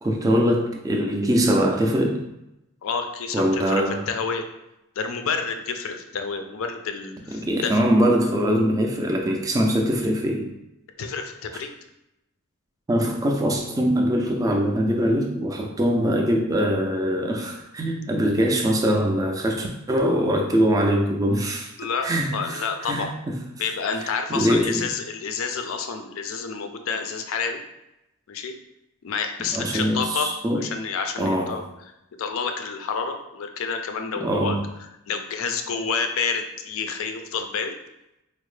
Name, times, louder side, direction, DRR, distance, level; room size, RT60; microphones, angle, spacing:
voice 1, 0.0-2.2 3.3-4.1 7.3-10.5 12.9-21.7 22.0-23.4 24.3-24.9 29.5-30.6 31.2-31.6 34.2-34.6, equal, 15° right, 2 dB, 0.3 m, -22 dB
voice 2, 2.8-4.4 5.0-7.8 11.0-11.7 21.8-23.1 23.6-27.6 28.3-28.5 29.0-30.3 30.6-31.6 32.2-37.7, left 5 dB, 60° left, 6 dB, 0.4 m, -29 dB
4.2 x 2.0 x 3.2 m, 0.89 s
head